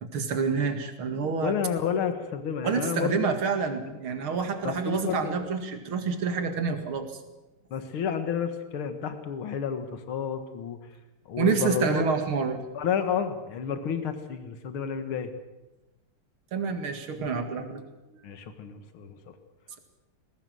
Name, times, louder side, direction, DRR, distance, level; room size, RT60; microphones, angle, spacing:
voice 1, 0.0-1.5 2.6-7.2 11.4-12.6 16.5-17.8, right 5 dB, 75° right, 7 dB, 2.8 m, -28 dB
voice 2, 1.4-3.3 3.9-4.0 4.6-5.4 7.7-10.8 11.3-12.0 12.8-15.3 17.2-17.3 18.2-19.1, left 7 dB, 75° left, 8 dB, 2.4 m, -30 dB
20.5 x 18.0 x 7.8 m, 1.0 s
omnidirectional pair, 2.4 m